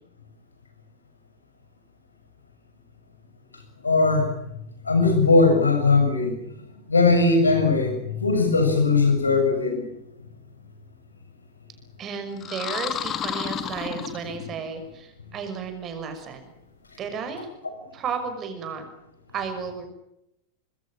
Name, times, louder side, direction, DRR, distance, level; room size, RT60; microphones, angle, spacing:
voice 1, 3.8-4.3 4.9-6.3 6.9-9.9, left 3 dB, 80° left, 6 dB, 6.8 m, -19 dB
voice 2, 12.0-16.4 17.0-17.5 17.9-18.8 19.3-19.9, right 6 dB, 30° right, 7 dB, 6.1 m, -33 dB
sound 1, 12.4-14.7, left 8 dB, 30° left, 2.3 m, -31 dB
26.0 x 21.5 x 7.5 m, 0.86 s
figure-of-eight pair, 90°, 0 cm